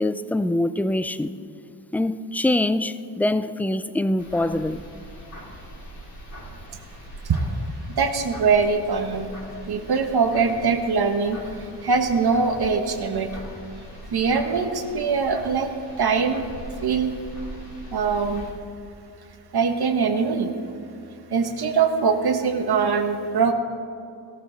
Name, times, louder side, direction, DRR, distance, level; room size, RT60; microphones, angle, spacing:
voice 1, 0.0-1.3 1.9-4.8, left 1 dB, 5° left, 0.3 m, -24 dB
sound 1, 4.2-18.5, right 1 dB, 50° left, 3.8 m, -41 dB
voice 2, 7.9-9.3 9.7-11.4 11.8-13.3 14.1-16.5 16.8-17.2 17.9-18.5 19.5-20.5 21.3-23.5, right 5 dB, 60° right, 1.3 m, -22 dB
17.5 x 13.5 x 4.0 m
wide cardioid pair, 115°, 44 cm